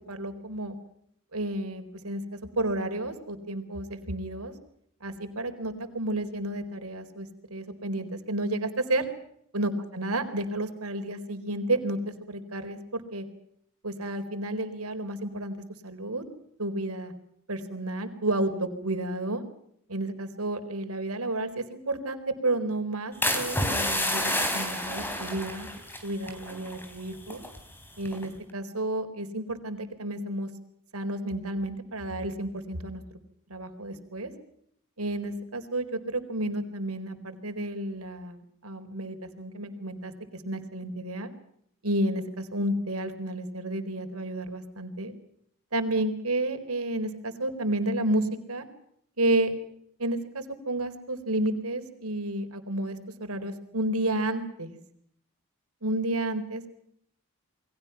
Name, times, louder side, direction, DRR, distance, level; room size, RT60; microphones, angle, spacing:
voice 1, 0.1-0.7 1.3-4.5 5.0-9.0 9.5-13.2 13.8-15.5 15.8-16.2 16.6-17.1 17.5-19.4 19.9-25.7 26.0-27.4 28.0-30.5 30.9-33.0 33.5-34.3 35.0-41.3 41.8-45.1 45.7-48.7 49.2-49.5 50.0-54.8 55.8-56.7, right 1 dB, 80° right, 8 dB, 4.2 m, -31 dB
sound 1, 23.2-27.6 28.1-28.4, left 1 dB, 10° left, 4.1 m, -29 dB
29.5 x 22.5 x 5.9 m, 0.69 s
head